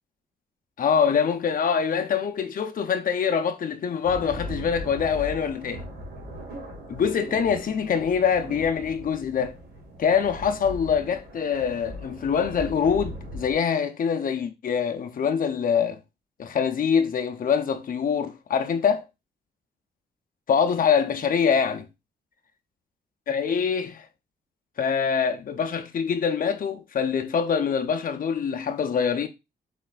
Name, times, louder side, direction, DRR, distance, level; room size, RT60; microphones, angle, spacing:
voice 1, 0.8-5.8 6.9-9.6 10.0-16.0 16.4-19.0 20.5-21.9 23.3-24.1 24.8-29.3, left 7 dB, 55° left, 0.7 m, -24 dB
sound 1, 4.0-13.5, equal, 65° right, 1.9 m, -39 dB
4.3 x 4.1 x 2.4 m
cardioid pair, 85°, 18 cm